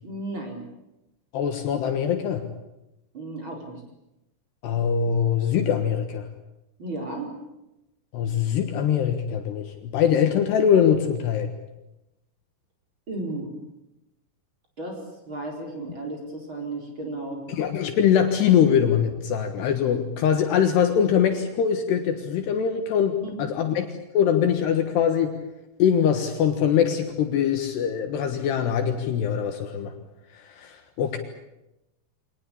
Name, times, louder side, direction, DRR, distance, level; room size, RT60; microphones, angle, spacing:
voice 1, 0.0-0.6 3.1-3.8 6.8-7.3 13.1-13.5 14.8-15.0 15.3-17.4 23.2-23.4, right 2 dB, 25° right, 1 dB, 4.7 m, -34 dB
voice 2, 1.3-2.5 4.6-6.3 8.1-11.5 17.5-23.9 24.1-25.3 25.8-29.9 30.3-31.2, left 8 dB, 65° left, 6 dB, 3.2 m, -22 dB
25.0 x 19.5 x 8.7 m, 0.93 s
omnidirectional pair, 5.7 m